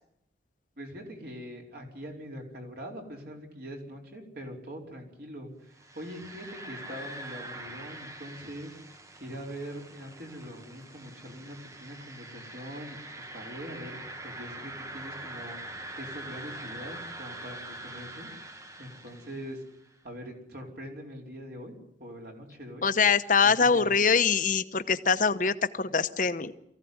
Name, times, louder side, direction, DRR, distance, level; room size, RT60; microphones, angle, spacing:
voice 1, 0.8-8.8 9.2-15.6 15.9-18.3 18.8-19.6 20.0-22.9 23.4-23.9, equal, 55° right, 0 dB, 4.7 m, -43 dB
sound 1, 5.7-19.7, right 1 dB, 15° right, 1.1 m, -44 dB
voice 2, 22.8-26.5, left 5 dB, 45° left, 10 dB, 1.0 m, -24 dB
23.0 x 15.5 x 9.5 m, 0.80 s
head